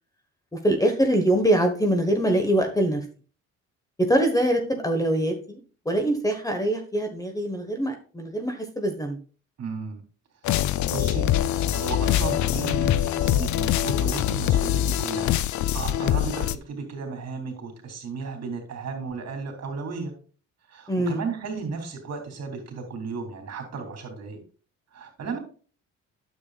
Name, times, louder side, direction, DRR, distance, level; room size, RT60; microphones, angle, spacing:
voice 1, 0.6-3.0 4.0-5.6 5.8-9.2 20.9-21.2, right 1 dB, 10° left, 5 dB, 1.3 m, -23 dB
voice 2, 9.6-10.0 10.9-20.1 20.7-24.4 24.9-25.4, right 4 dB, 55° right, 4 dB, 3.1 m, -34 dB
sound 1, 10.4-16.6, left 12 dB, 70° left, 0.5 m, -24 dB
9.7 x 7.2 x 2.4 m, 0.38 s
cardioid pair, 90°, 30 cm